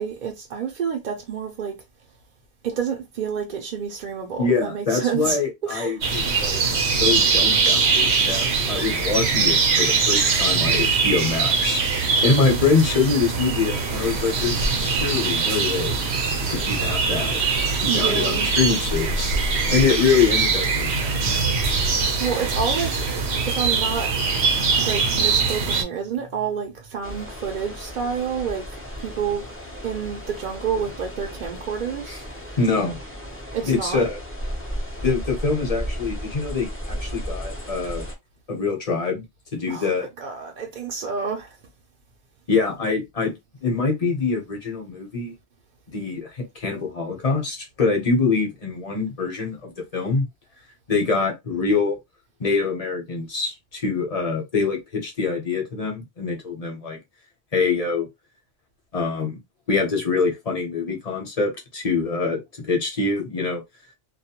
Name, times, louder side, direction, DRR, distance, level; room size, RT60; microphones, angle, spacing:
voice 1, 0.0-1.8 2.6-5.4 5.6-6.0 17.9-18.5 22.2-23.1 23.4-24.1 24.8-28.7 29.0-29.5 29.8-32.3 33.5-34.0 39.7-41.6, right 6 dB, 60° right, 0.6 m, -28 dB
voice 2, 4.4-11.8 12.2-16.0 16.5-17.4 17.8-19.3 19.7-21.4 32.1-32.2 32.6-33.0 33.6-34.2 35.0-38.0 38.5-39.2 39.5-40.1 42.5-43.3 43.6-45.3 45.9-50.3 50.9-52.0 52.4-57.0 57.5-58.1 58.9-59.4 59.7-63.6, left 4 dB, 40° left, 0.8 m, -24 dB
sound 1, 6.0-25.8, right 4 dB, 80° right, 0.9 m, -22 dB
sound 2, 27.0-38.1, equal, 20° left, 0.4 m, -34 dB
2.3 x 2.1 x 2.8 m
omnidirectional pair, 1.1 m